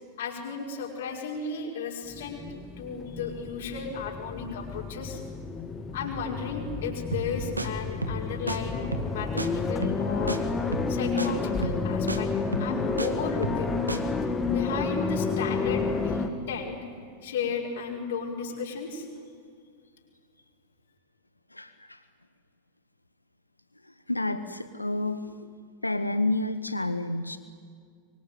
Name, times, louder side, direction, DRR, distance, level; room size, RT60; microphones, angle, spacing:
voice 1, 0.2-2.4 2.8-5.2 5.9-10.5 10.9-12.3 12.6-13.8 14.5-16.8 17.2-19.1, left 5 dB, 60° left, 0 dB, 5.5 m, -34 dB
sound 1, 2.1-16.3, left 4 dB, 15° left, 2.2 m, -30 dB
sound 2, 7.1-7.3 7.6-7.7 8.0-8.2 8.5-8.6 8.9-9.1 9.4-9.5 9.8-10.0 10.3-10.4 10.7-10.9 11.2-11.3 11.6-11.8 12.1-12.2 12.5-13.1 13.4-13.6 13.9-14.0, right 2 dB, 85° right, 1.9 m, -31 dB
voice 2, 21.5-22.0 24.1-25.5 25.8-27.4, left 2 dB, 85° left, 11 dB, 1.1 m, -29 dB
25.0 x 24.0 x 9.4 m, 2.1 s
figure-of-eight pair, 90°, 0 cm